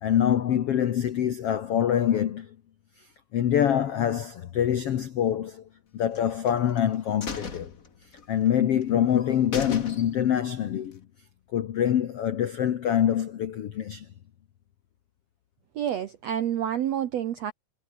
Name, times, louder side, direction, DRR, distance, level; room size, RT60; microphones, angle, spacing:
voice 1, 0.0-2.5 3.3-5.6 5.9-7.7 8.3-11.0 11.5-14.1, left 10 dB, 90° left, 1.3 m, -25 dB
sound 1, 6.1-6.8 7.2-8.5 8.8-8.9 9.2-9.3 9.5-10.4 10.8-10.9, left 5 dB, 30° left, 1.6 m, -37 dB
voice 2, 15.7-17.5, right 10 dB, 75° right, 1.5 m, -28 dB
omnidirectional pair, 4.5 m